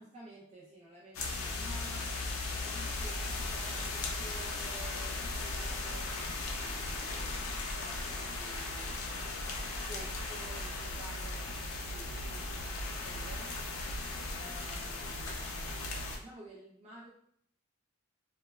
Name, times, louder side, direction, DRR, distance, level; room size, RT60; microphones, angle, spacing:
voice 1, 0.0-2.2 2.5-9.0 9.9-13.7 14.3-17.1, right 1 dB, 30° right, -6 dB, 0.5 m, -52 dB
sound 1, 1.1-16.2, left 2 dB, 65° left, 0.4 m, -37 dB
sound 2, 2.9-7.5 7.7-8.0, left 1 dB, 15° left, 0.6 m, -54 dB
2.9 x 2.2 x 2.2 m, 0.68 s
head